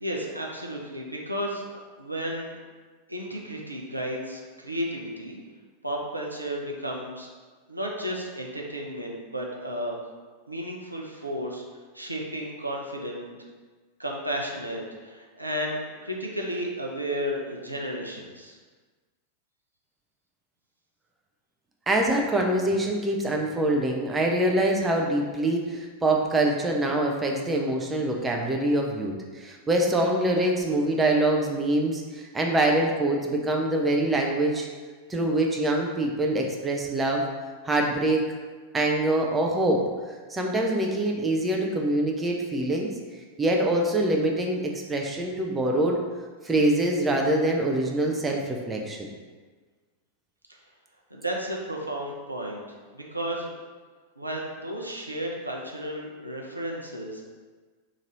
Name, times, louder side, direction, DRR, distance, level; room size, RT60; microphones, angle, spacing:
voice 1, 0.0-2.6 3.1-5.4 5.8-7.3 7.7-9.9 10.5-11.6 11.9-13.4 14.0-18.6 51.1-52.7 52.9-53.5 54.2-57.2, equal, 85° right, -1 dB, 0.5 m, -33 dB
voice 2, 21.9-34.7 35.1-37.2 37.6-38.2 38.7-39.8 40.3-42.9 43.4-46.0 46.4-49.1, right 1 dB, 15° right, 0 dB, 0.5 m, -24 dB
3.0 x 2.6 x 3.9 m, 1.4 s
figure-of-eight pair, 90°, 0 cm